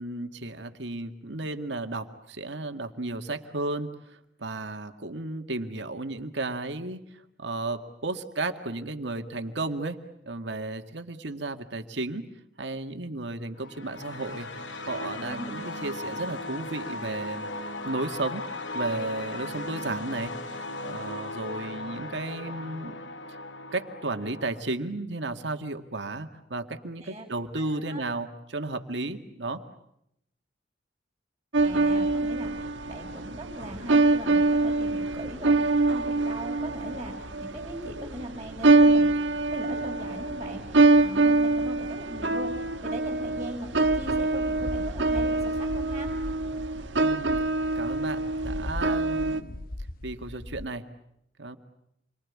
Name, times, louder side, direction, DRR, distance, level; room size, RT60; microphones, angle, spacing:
voice 1, 0.0-10.0 10.3-12.3 12.6-14.5 14.9-17.5 17.8-18.5 18.7-23.0 23.7-29.6 47.0-47.4 47.8-49.6 50.0-50.9 51.4-51.6, right 2 dB, 70° right, 7 dB, 2.0 m, -34 dB
sound 1, 13.6-24.6, left 2 dB, 80° left, 2.3 m, -37 dB
voice 2, 15.2-15.6 27.0-27.3 27.5-28.0 31.6-46.1, right 1 dB, 20° right, -4 dB, 5.2 m, -40 dB
sound 2, 31.5-49.4, right 2 dB, 90° right, 1.6 m, -25 dB
sound 3, 43.7-50.6, left 1 dB, 50° left, 1.2 m, -39 dB
28.5 x 24.0 x 8.6 m, 0.77 s
head